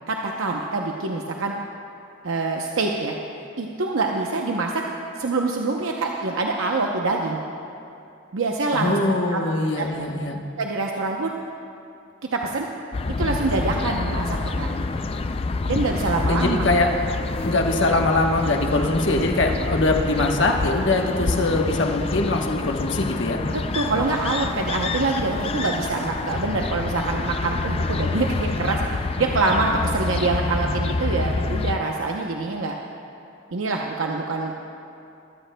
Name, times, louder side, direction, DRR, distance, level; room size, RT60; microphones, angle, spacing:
voice 1, 0.1-1.5 2.2-3.1 3.6-4.8 5.2-7.4 8.3-9.4 9.7-9.9 10.6-11.3 12.3-12.7 13.2-14.7 15.7-16.6 23.5-32.7 33.5-34.5, right 3 dB, 85° right, 0 dB, 0.7 m, -25 dB
voice 2, 8.7-10.4 16.3-16.9 17.2-23.4, left 2 dB, 65° left, 2 dB, 1.1 m, -22 dB
sound 1, 12.9-31.8, left 3 dB, 30° left, 0.3 m, -27 dB
21.0 x 14.0 x 2.2 m, 2.6 s
head